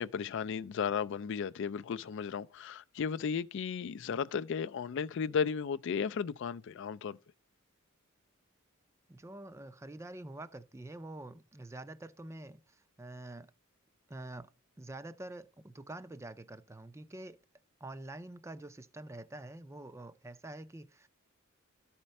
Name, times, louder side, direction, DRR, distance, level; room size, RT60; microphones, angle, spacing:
voice 1, 0.0-7.2, left 6 dB, 60° left, 0.4 m, -34 dB
voice 2, 9.1-13.5 14.1-14.5 14.8-17.4 17.8-21.1, right 2 dB, 15° right, 0.4 m, -46 dB
12.5 x 4.4 x 5.2 m
head